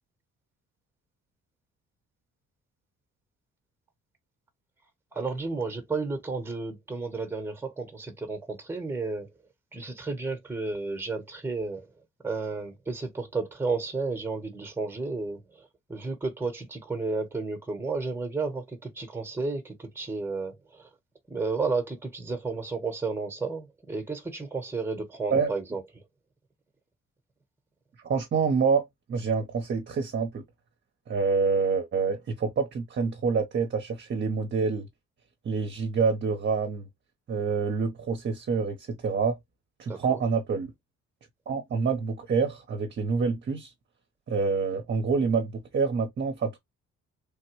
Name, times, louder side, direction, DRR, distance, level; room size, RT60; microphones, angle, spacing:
voice 1, 5.1-9.3 9.7-11.9 12.2-20.9 21.3-25.8 39.9-40.2, right 3 dB, 10° right, 1.0 m, -32 dB
voice 2, 28.0-30.4 31.1-34.9 35.4-36.9 37.3-39.4 39.8-40.7 41.5-43.7 44.3-46.6, right 5 dB, 40° right, 0.7 m, -27 dB
3.4 x 2.1 x 3.0 m
cardioid pair, 90°, 30 cm